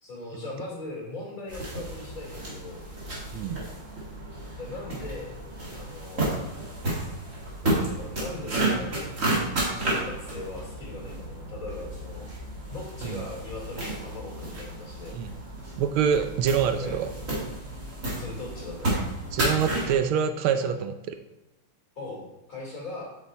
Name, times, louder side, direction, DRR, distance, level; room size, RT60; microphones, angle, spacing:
voice 1, 0.0-2.8 4.6-5.3 5.7-6.2 7.6-8.9 9.8-12.3 12.7-15.2 16.8-17.0 18.1-19.0 20.6-20.7 21.9-23.1, left 2 dB, 35° left, -3 dB, 3.3 m, -39 dB
sound 1, 1.5-20.0, right 1 dB, 35° right, 2.4 m, -32 dB
voice 2, 15.8-17.1 19.3-21.1, right 7 dB, 80° right, 8 dB, 1.4 m, -26 dB
7.9 x 5.7 x 4.1 m, 1.0 s
omnidirectional pair, 2.4 m